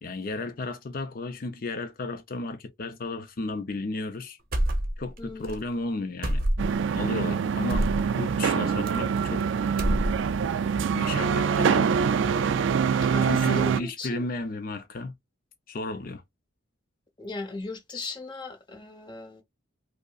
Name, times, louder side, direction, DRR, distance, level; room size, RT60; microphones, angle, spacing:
voice 1, 0.0-4.4 5.0-6.4 6.9-7.9 8.1-9.4 10.8-11.9 13.2-15.1 15.7-16.2, left 2 dB, 45° left, 0.4 m, -33 dB
sound 1, 4.5-5.2 5.4-5.6 6.2-6.9 7.7-8.0 8.9-9.4 9.7-10.4, right 1 dB, 45° right, 0.7 m, -26 dB
voice 2, 5.2-5.5 13.0-14.2 17.2-19.4, left 2 dB, 25° left, 0.8 m, -37 dB
sound 2, 6.6-13.8, right 6 dB, 65° right, 0.3 m, -25 dB
5.0 x 2.0 x 2.3 m
head